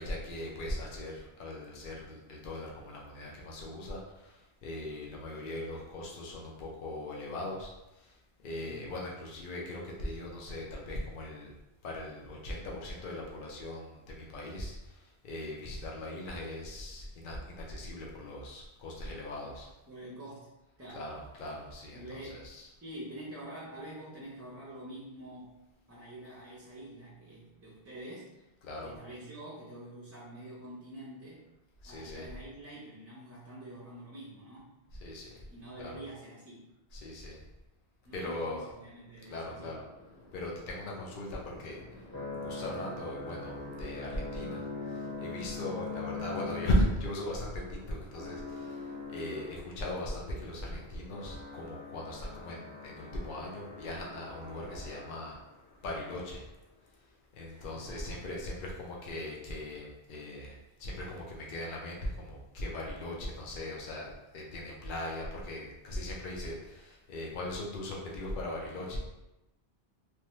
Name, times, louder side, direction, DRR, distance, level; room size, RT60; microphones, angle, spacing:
voice 1, 0.0-11.5 11.8-19.7 20.9-22.7 28.6-28.9 31.8-32.3 35.0-35.5 35.8-35.9 36.9-37.4 38.1-38.7 39.3-39.8 40.3-41.8 42.4-55.4 55.8-56.4 57.3-60.5 60.8-69.0, left 1 dB, 60° left, -2 dB, 0.7 m, -38 dB
voice 2, 8.5-8.9 19.4-19.6 19.9-20.5 20.8-21.1 21.9-22.5 22.8-25.6 25.9-28.3 28.8-31.5 31.9-34.7 35.5-36.7 38.0-39.7 57.4-58.2, right 1 dB, 20° right, -7 dB, 0.5 m, -46 dB
sound 1, 39.5-55.5, left 3 dB, 20° left, 0.8 m, -43 dB
3.1 x 2.2 x 2.9 m, 0.97 s
omnidirectional pair, 1.0 m